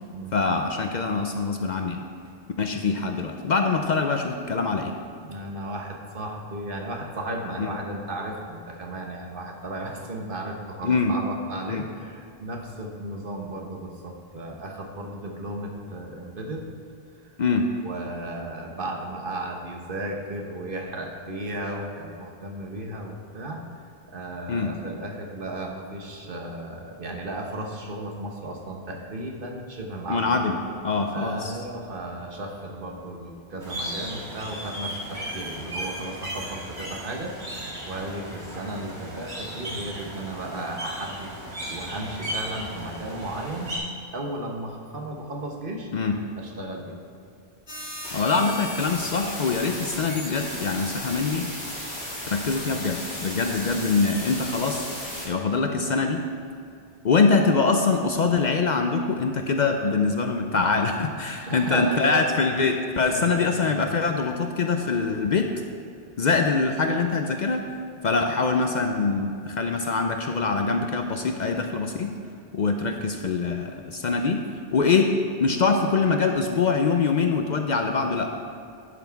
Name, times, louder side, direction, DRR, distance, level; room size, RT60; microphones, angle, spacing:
voice 1, 0.3-2.1 2.6-4.9 7.6-7.7 10.8-11.1 11.7-11.8 17.4-17.7 24.5-24.7 30.1-30.6 30.8-31.5 45.9-46.2 48.1-51.5 52.3-54.8 55.2-56.3 57.0-65.5 66.2-67.7 68.0-72.1 72.5-74.4 74.7-75.1 75.4-78.3, left 4 dB, 55° left, 4 dB, 0.6 m, -24 dB
voice 2, 5.2-16.7 17.2-17.4 17.8-23.6 24.1-30.4 31.1-41.3 41.7-43.8 44.1-45.9 46.4-47.0 61.4-62.3 63.1-63.9, right 1 dB, 60° right, 1 dB, 1.3 m, -35 dB
sound 1, 33.6-43.8, right 1 dB, 85° right, 2.1 m, -36 dB
sound 2, 47.7-55.3, left 1 dB, 85° left, 2.4 m, -35 dB
11.0 x 5.9 x 4.6 m, 2.4 s
omnidirectional pair, 1.0 m